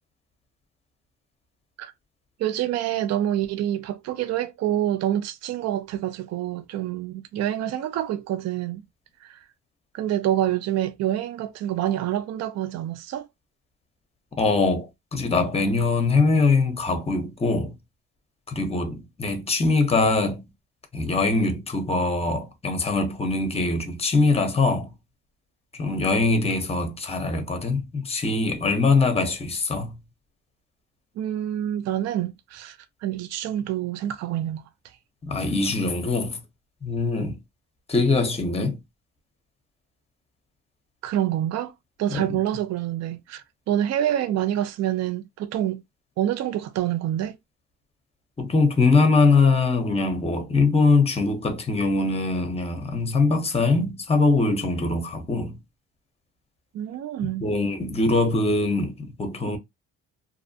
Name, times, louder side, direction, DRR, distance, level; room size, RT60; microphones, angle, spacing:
voice 1, 2.4-8.8 9.2-9.4 9.9-13.3 31.2-34.6 41.0-41.7 42.0-45.8 46.2-47.4 56.7-57.5, right 12 dB, 60° right, 0.4 m, -27 dB
voice 2, 14.4-17.7 18.5-20.4 20.9-24.9 25.8-29.9 35.2-36.4 36.8-37.4 37.9-38.8 42.1-42.2 48.4-55.5 57.2-59.6, left 3 dB, 20° left, 0.7 m, -22 dB
2.6 x 2.1 x 2.6 m
cardioid pair, 90°, 30 cm